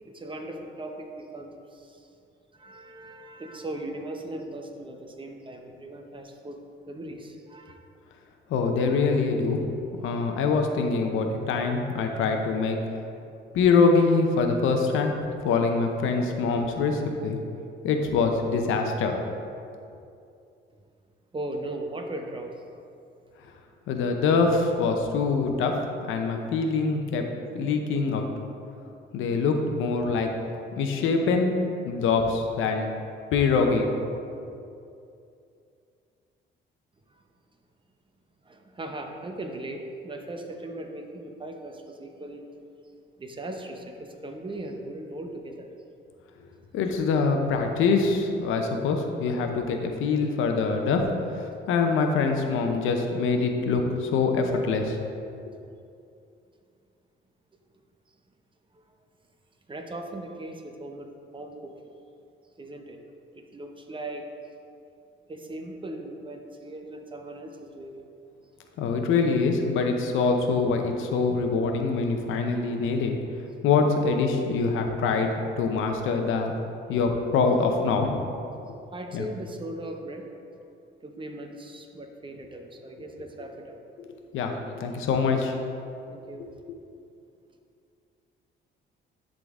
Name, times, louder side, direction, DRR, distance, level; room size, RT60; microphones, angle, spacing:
voice 1, 0.1-2.1 2.5-6.6 6.9-7.8 21.3-22.5 37.1-37.2 38.4-42.4 43.2-45.7 58.7-58.9 59.7-61.9 62.6-63.0 63.3-64.3 65.3-68.0 78.9-80.3 81.0-83.8 86.1-86.5, right 1 dB, 25° right, 3 dB, 0.8 m, -38 dB
voice 2, 8.5-9.6 10.0-12.8 13.5-15.1 15.4-17.4 17.8-19.2 23.9-25.8 26.1-27.2 27.5-28.3 29.1-30.3 30.8-31.5 31.8-32.9 33.3-33.9 46.7-51.0 51.7-55.0 68.8-73.1 73.6-76.6 76.9-78.2 79.1-79.2 84.3-85.5, left 4 dB, 85° left, 4 dB, 0.8 m, -24 dB
11.0 x 3.9 x 3.6 m, 2.6 s
cardioid pair, 90°, 20 cm